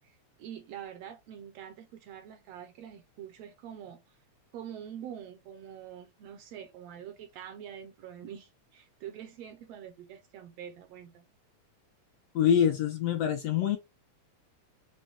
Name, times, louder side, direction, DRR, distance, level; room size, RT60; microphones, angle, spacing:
voice 1, 0.0-4.2 4.5-11.2, right 9 dB, 75° right, 1.6 m, -45 dB
voice 2, 12.3-13.8, left 9 dB, 75° left, 1.5 m, -25 dB
6.2 x 2.1 x 3.9 m
omnidirectional pair, 3.4 m